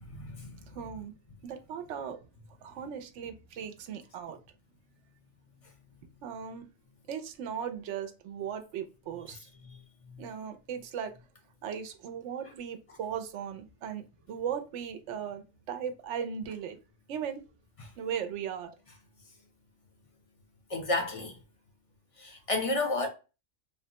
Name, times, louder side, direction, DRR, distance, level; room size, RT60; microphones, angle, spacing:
voice 1, 0.1-0.9 9.6-9.8 10.1-10.2 20.7-21.3 22.2-23.1, left 2 dB, 40° left, 0.6 m, -32 dB
voice 2, 0.7-1.1 1.4-2.3 2.6-4.4 6.2-6.7 7.1-9.4 10.2-11.1 11.6-16.8 17.1-17.4 18.0-18.8, right 8 dB, 80° right, 0.9 m, -37 dB
3.5 x 2.1 x 2.7 m
omnidirectional pair, 1.2 m